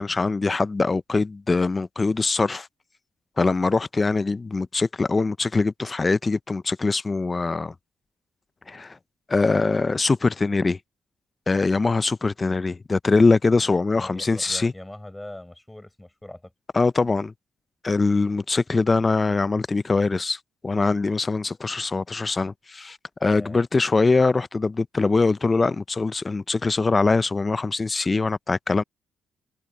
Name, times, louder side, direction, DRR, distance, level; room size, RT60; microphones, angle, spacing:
voice 1, 0.0-2.7 3.4-7.7 8.7-9.0 9.3-10.8 11.5-14.7 16.7-17.3 17.8-28.8, left 3 dB, 25° left, 0.4 m, -22 dB
voice 2, 13.9-16.5 23.3-23.6, left 1 dB, 10° left, 5.7 m, -41 dB
cardioid pair, 90°, 0 cm